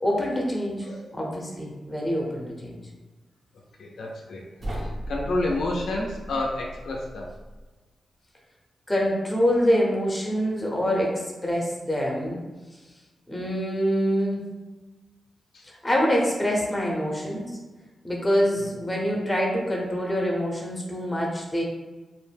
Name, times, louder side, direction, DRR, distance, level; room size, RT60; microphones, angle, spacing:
voice 1, 0.0-0.9 1.1-2.8 8.9-12.4 13.3-14.5 15.7-17.5 18.0-21.6, equal, 15° left, -2 dB, 0.7 m, -25 dB
voice 2, 0.8-1.2 3.8-7.3 15.5-15.6 18.6-18.7, left 2 dB, 80° left, -1 dB, 0.4 m, -30 dB
sound 1, 4.6-7.7, equal, 45° right, 0.7 m, -36 dB
2.5 x 2.0 x 3.3 m, 1.2 s
cardioid pair, 70°, 0 cm